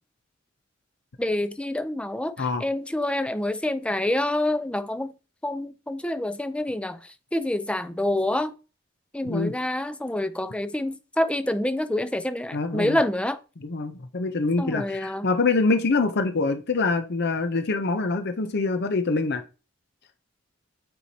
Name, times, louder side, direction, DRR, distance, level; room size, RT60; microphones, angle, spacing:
voice 1, 1.2-5.1 5.4-7.0 7.3-8.5 9.1-13.4 14.6-15.3, left 1 dB, 5° left, 0.5 m, -27 dB
voice 2, 9.2-9.6 12.5-13.0 13.6-19.4, left 3 dB, 55° left, 0.7 m, -25 dB
8.3 x 4.4 x 2.8 m
head